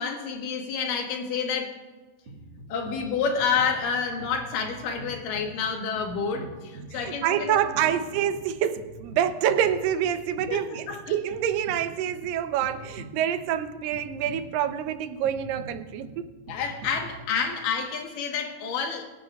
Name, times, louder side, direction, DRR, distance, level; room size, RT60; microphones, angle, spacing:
voice 1, 0.0-1.8 2.7-7.6 10.5-11.0 16.5-19.1, left 6 dB, 80° left, 3 dB, 2.9 m, -29 dB
sound 1, 2.3-17.6, right 1 dB, 50° right, 2.0 m, -45 dB
voice 2, 6.9-16.3, right 10 dB, 85° right, 10 dB, 2.4 m, -27 dB
22.5 x 9.6 x 2.3 m, 1.3 s
omnidirectional pair, 3.9 m